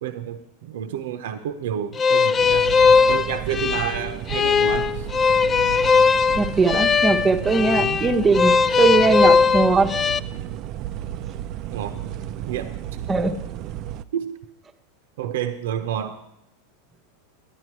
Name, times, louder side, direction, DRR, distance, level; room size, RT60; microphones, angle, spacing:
voice 1, 0.0-2.6 3.1-5.1 7.8-8.0 11.7-11.9 12.5-12.7 14.1-14.4 15.2-16.2, right 10 dB, 75° right, 9 dB, 0.7 m, -29 dB
sound 1, 2.0-10.2, left 5 dB, 25° left, 0.3 m, -19 dB
sound 2, 2.4-14.0, right 11 dB, 45° right, 0.4 m, -33 dB
voice 2, 6.4-9.9 13.1-13.4, right 3 dB, 20° right, 7 dB, 0.9 m, -20 dB
10.0 x 9.8 x 4.6 m, 0.79 s
hypercardioid pair, 110°, 0 cm